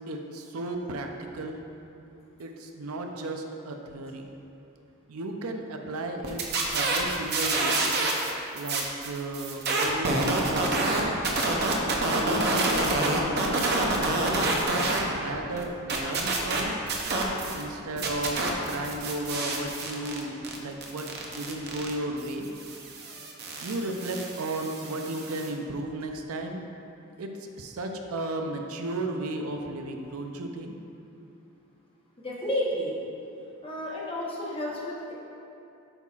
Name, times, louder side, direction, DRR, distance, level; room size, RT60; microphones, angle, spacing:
voice 1, 0.1-1.1 1.3-1.6 2.4-4.3 5.1-6.4 6.7-7.8 8.5-11.2 12.0-16.7 17.5-18.4 18.6-22.5 23.6-26.6 27.2-27.3 27.6-30.7, right 1 dB, 90° right, 3 dB, 0.6 m, -34 dB
sound 1, 6.2-8.3 8.6-15.0 15.3-17.6 18.0-25.5, right 2 dB, 50° right, 0.7 m, -28 dB
voice 2, 32.2-32.9 33.6-35.1, equal, 25° left, -4 dB, 0.9 m, -31 dB
8.0 x 5.6 x 2.4 m, 2.7 s
head